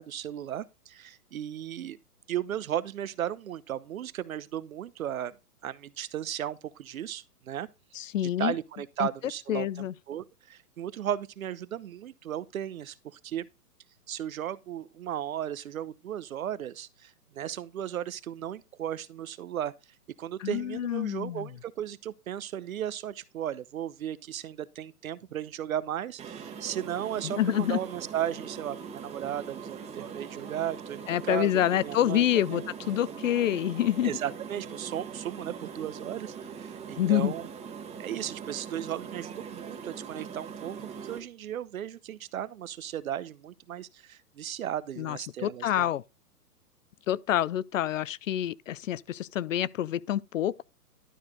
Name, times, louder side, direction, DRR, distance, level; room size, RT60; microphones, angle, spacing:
voice 1, 0.0-2.0 2.3-5.4 5.6-7.7 8.4-13.5 14.1-19.7 20.2-32.3 32.5-32.6 34.0-37.5 38.0-45.9, right 11 dB, 65° right, 0.9 m, -35 dB
voice 2, 7.9-8.5 9.0-9.1 9.5-9.9 20.4-21.5 27.2-27.8 31.1-34.1 37.0-37.3 45.0-46.0 47.1-50.6, left 12 dB, 55° left, 0.5 m, -27 dB
sound 1, 26.2-41.2, right 6 dB, 15° right, 1.4 m, -42 dB
12.0 x 4.4 x 4.9 m
hypercardioid pair, 135°, 46 cm